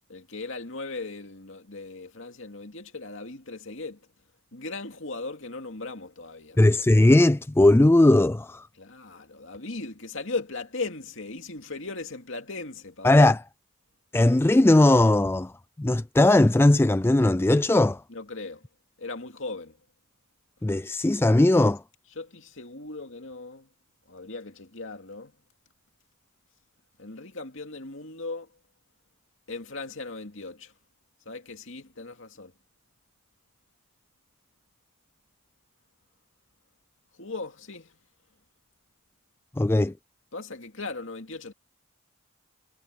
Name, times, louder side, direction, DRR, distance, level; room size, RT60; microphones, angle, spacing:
voice 1, 0.1-4.0 4.5-6.6 8.8-13.4 18.1-18.6 19.0-19.8 22.2-23.7 24.1-25.3 27.0-28.5 29.5-30.7 31.3-32.5 37.2-37.9 40.3-41.5, left 3 dB, 60° left, 2.5 m, -38 dB
voice 2, 6.6-8.6 13.0-13.4 14.1-15.5 15.8-18.0 20.6-21.8 39.6-39.9, left 1 dB, 10° left, 0.3 m, -19 dB
head